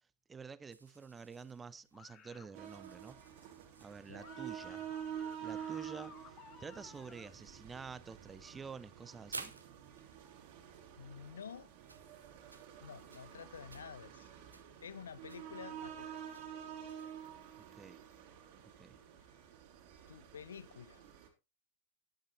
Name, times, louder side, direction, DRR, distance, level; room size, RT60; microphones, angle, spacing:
voice 1, 0.3-3.2 3.8-4.9 5.4-9.5 17.6-18.0 18.6-19.0, right 5 dB, 15° right, 0.7 m, -49 dB
sound 1, 0.7-19.0, right 3 dB, 80° right, 1.0 m, -57 dB
sound 2, 1.9-2.5 4.2-7.3, left 8 dB, 30° left, 1.5 m, -56 dB
sound 3, 2.5-21.3, right 9 dB, 45° right, 3.2 m, -49 dB
voice 2, 11.0-11.7 12.8-14.3 14.8-16.2 20.1-21.1, left 7 dB, 70° left, 0.4 m, -50 dB
11.5 x 10.0 x 3.2 m
figure-of-eight pair, 90°, 0 cm